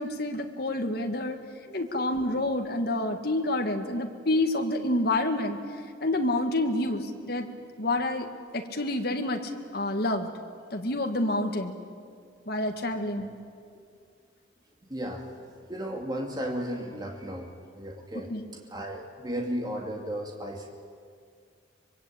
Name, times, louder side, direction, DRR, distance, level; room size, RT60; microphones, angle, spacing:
voice 1, 0.0-1.4 1.7-5.6 6.0-7.5 7.8-8.3 8.5-9.4 9.7-10.3 10.7-11.8 12.5-13.3 18.3-18.4, left 1 dB, 50° left, 4 dB, 2.0 m, -28 dB
voice 2, 14.9-18.3 18.7-20.7, equal, 20° right, 0 dB, 2.5 m, -35 dB
24.5 x 23.0 x 8.8 m, 2.2 s
head